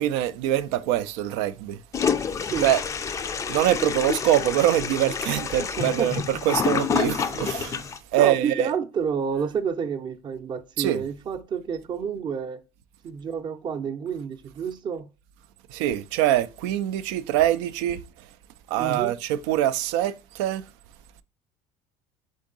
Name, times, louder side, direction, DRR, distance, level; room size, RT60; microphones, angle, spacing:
voice 1, 0.0-1.8 2.6-2.8 3.5-7.8 8.1-8.7 10.8-11.0 15.7-18.0 18.7-20.6, right 12 dB, 80° right, 0.4 m, -24 dB
Toilet flush, 1.9-8.0, left 6 dB, 25° left, 0.3 m, -28 dB
voice 2, 5.8-6.4 8.2-12.6 13.0-15.1 18.8-19.2, right 6 dB, 35° right, 0.6 m, -29 dB
3.7 x 3.7 x 3.8 m
supercardioid pair, 115°, 13 cm